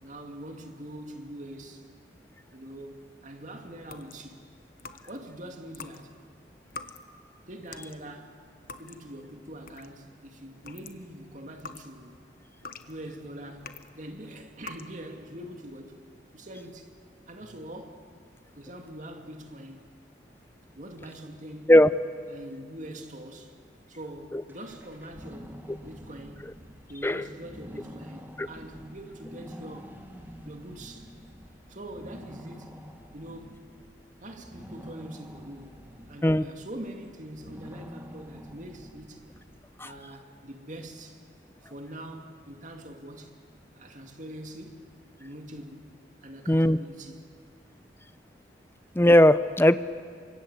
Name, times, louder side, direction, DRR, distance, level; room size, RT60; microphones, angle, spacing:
voice 1, 0.0-1.9 2.5-4.5 5.1-6.2 7.5-8.5 8.8-12.2 12.8-16.0 16.3-16.9 17.3-18.1 18.5-19.9 20.7-21.8 22.3-23.6 23.9-26.6 26.9-30.0 30.4-31.1 31.7-32.8 33.1-33.6 34.2-39.3 39.8-41.2 41.6-43.4 43.8-44.9 45.2-45.9 46.2-47.2, right 1 dB, 45° right, 2.3 m, -43 dB
sound 1, 3.8-5.3 5.7-10.1 10.5-14.0 14.5-14.9, left 4 dB, 55° left, 1.2 m, -45 dB
sound 2, 24.5-39.9, equal, 10° right, 1.9 m, -47 dB
voice 2, 46.5-46.8 48.9-49.8, left 1 dB, 15° left, 0.6 m, -18 dB
27.5 x 24.5 x 8.1 m
head